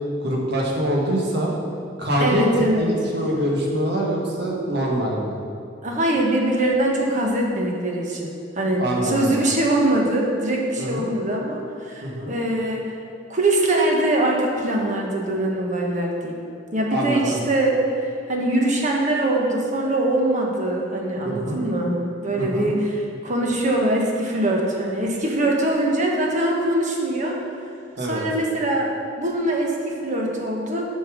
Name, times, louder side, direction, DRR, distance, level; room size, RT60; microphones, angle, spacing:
voice 1, 0.2-1.5 2.0-2.4 2.8-5.4 8.8-9.4 10.8-11.1 12.0-12.3 16.9-17.4 21.2-21.6 22.4-22.7 28.0-28.2, equal, 60° right, -2 dB, 1.6 m, -24 dB
voice 2, 2.2-2.9 5.8-12.9 13.3-16.4 16.7-21.9 22.2-27.4 28.0-28.9 29.2-30.8, right 1 dB, 40° right, -1 dB, 1.3 m, -22 dB
7.3 x 5.5 x 6.2 m, 2.5 s
head